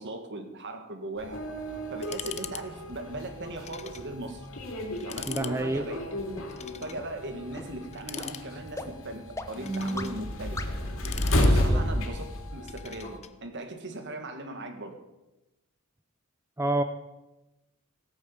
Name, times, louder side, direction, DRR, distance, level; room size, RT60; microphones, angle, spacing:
voice 1, 0.0-1.4 1.9-4.5 5.0-6.0 6.8-10.6 11.4-12.2 12.5-15.0, right 2 dB, 50° right, 7 dB, 1.8 m, -38 dB
sound 1, 1.2-13.2, equal, 60° left, 3.1 m, -32 dB
sound 2, 2.0-2.6 2.9-3.0 3.6-4.1 4.5-4.6 5.0-5.6 6.5-7.0 7.9-8.8 9.4-10.2 10.8-12.0 12.7-13.3, left 10 dB, 30° left, 0.6 m, -41 dB
sound 3, 4.0-4.1 4.6-4.7 5.2-5.3 5.8-5.9 6.4-6.5 7.0-7.1 7.6-7.7 8.2-8.3 8.8-8.9 9.4-9.5 10.0-10.1 10.6-10.7, left 2 dB, 15° left, 0.9 m, -38 dB
voice 2, 5.3-5.9 11.5-11.8 16.6-16.8, right 1 dB, 10° right, 7 dB, 0.6 m, -28 dB
17.0 x 9.0 x 7.3 m, 1.0 s
head